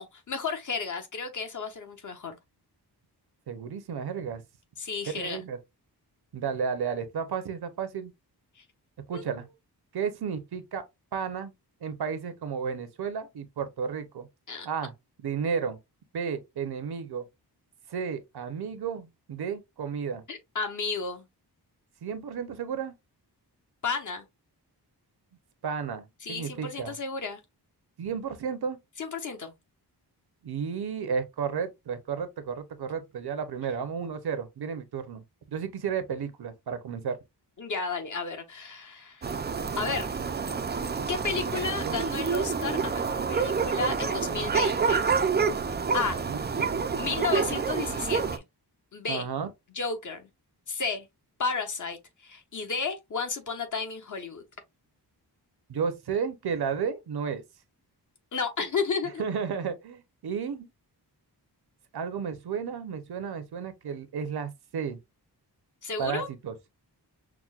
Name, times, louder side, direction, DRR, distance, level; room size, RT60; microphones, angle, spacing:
voice 1, 0.0-2.4 4.8-5.4 8.6-8.7 9.1-9.3 14.5-14.7 20.3-21.3 23.8-24.3 26.2-27.4 29.0-29.5 37.6-39.4 39.8-40.2 41.1-45.0 45.9-46.2 47.0-48.4 48.9-49.3 49.7-50.3 50.7-51.1 51.4-54.4 58.3-59.2 65.8-66.3, left 4 dB, 50° left, 0.9 m, -32 dB
voice 2, 3.5-4.4 5.1-5.6 6.3-8.1 9.1-9.5 9.9-10.8 11.1-11.5 11.8-14.3 14.6-14.9 15.2-15.8 16.1-17.2 17.9-20.2 22.0-22.9 25.6-26.9 28.0-28.8 30.4-37.2 41.6-42.0 46.3-46.9 49.1-49.5 55.7-57.4 59.2-60.7 61.9-65.0 66.0-66.5, right 6 dB, 70° right, 0.7 m, -33 dB
sound 1, 39.2-48.4, right 5 dB, 25° right, 0.4 m, -28 dB
5.9 x 2.1 x 2.4 m
wide cardioid pair, 150°, 40 cm